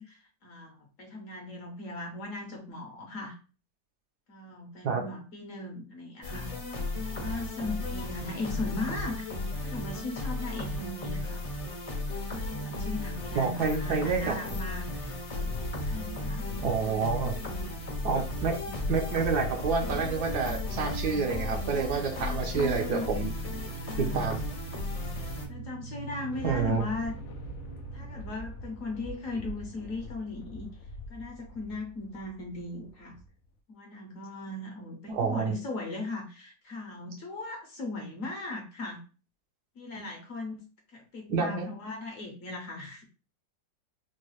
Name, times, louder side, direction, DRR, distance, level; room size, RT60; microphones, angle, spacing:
voice 1, 0.0-3.4 4.3-6.5 7.2-9.3 9.6-11.4 12.3-15.2 15.9-16.5 21.9-23.1 23.9-24.3 25.1-27.1 27.9-30.7 31.1-33.2 33.7-39.0 39.8-40.6 40.9-43.0, left 2 dB, 60° left, 2 dB, 1.0 m, -38 dB
sound 1, 6.2-25.5, left 2 dB, 40° left, 0.5 m, -35 dB
voice 2, 13.4-14.4 16.6-17.4 18.0-23.3 24.0-24.5 26.4-26.9 35.1-35.6 39.9-40.1 41.3-41.7, right 5 dB, 70° right, 3 dB, 1.3 m, -29 dB
sound 2, 15.0-24.7 26.0-33.3, left 1 dB, 85° left, 0.6 m, -42 dB
sound 3, 22.0-28.3, right 4 dB, 45° right, 0.4 m, -43 dB
4.5 x 2.3 x 3.1 m, 0.36 s
omnidirectional pair, 1.8 m